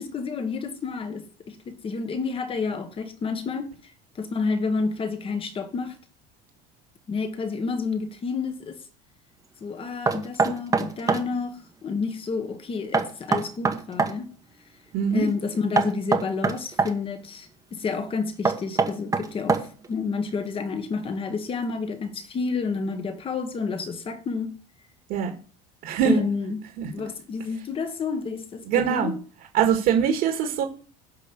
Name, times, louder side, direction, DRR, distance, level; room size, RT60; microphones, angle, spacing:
voice 1, 0.0-3.7 4.2-6.0 7.1-8.8 9.6-14.3 15.1-24.5 26.0-26.6 26.9-29.2, left 4 dB, 30° left, 1.5 m, -30 dB
Knock, 10.1-11.3 12.9-14.2 15.8-16.9 18.5-19.9, right 4 dB, 15° right, 1.1 m, -23 dB
voice 2, 14.9-15.3 25.1-25.3 25.8-26.2 26.8-26.9 28.6-29.1 29.5-30.6, right 7 dB, 60° right, 2.0 m, -22 dB
8.4 x 5.4 x 7.0 m
cardioid pair, 135°, 20 cm